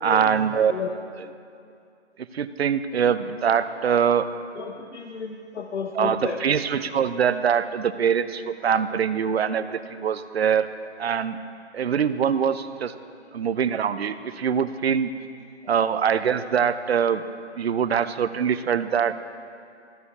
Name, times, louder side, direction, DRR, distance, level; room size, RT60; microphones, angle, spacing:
voice 1, 0.0-0.7 1.2-1.3 2.2-4.3 5.9-10.7 11.0-11.4 11.7-12.9 13.3-15.1 15.7-17.2 17.5-19.2, right 7 dB, 60° right, 12 dB, 0.5 m, -23 dB
voice 2, 4.6-6.4, left 6 dB, 75° left, 4 dB, 0.8 m, -32 dB
13.5 x 4.8 x 6.8 m, 2.4 s
hypercardioid pair, 175°, 35 cm